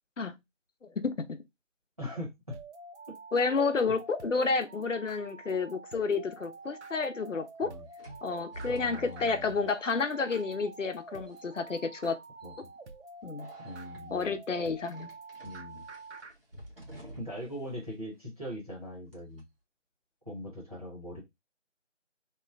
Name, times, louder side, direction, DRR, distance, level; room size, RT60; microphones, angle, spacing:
voice 1, 1.0-1.4 3.3-7.7 8.2-12.2 13.2-13.5 14.1-15.1, left 4 dB, 80° left, 0.7 m, -30 dB
voice 2, 2.0-2.6 3.1-3.2 7.6-7.8 8.7-9.6 12.4-12.7 13.6-14.3 15.4-15.8 17.2-19.4 20.2-21.2, equal, 30° right, 1.1 m, -41 dB
sound 1, 2.5-16.3, right 3 dB, 65° right, 0.6 m, -48 dB
sound 2, 6.6-6.7 8.0-11.0 11.3-11.8 12.4-12.6 13.4-14.0 14.8-17.6 17.8-17.9 19.1-19.4, right 1 dB, 50° right, 1.3 m, -50 dB
2.9 x 2.1 x 2.4 m
figure-of-eight pair, 180°, 37 cm